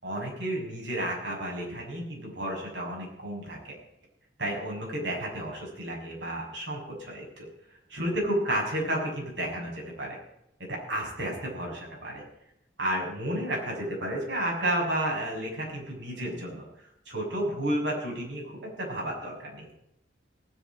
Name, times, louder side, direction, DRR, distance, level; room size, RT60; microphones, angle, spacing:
voice 1, 0.0-3.7 4.4-7.4 7.9-10.2 10.6-12.2 12.8-16.7 17.0-19.7, right 1 dB, 80° right, -1 dB, 6.6 m, -32 dB
18.5 x 9.1 x 5.0 m, 0.79 s
head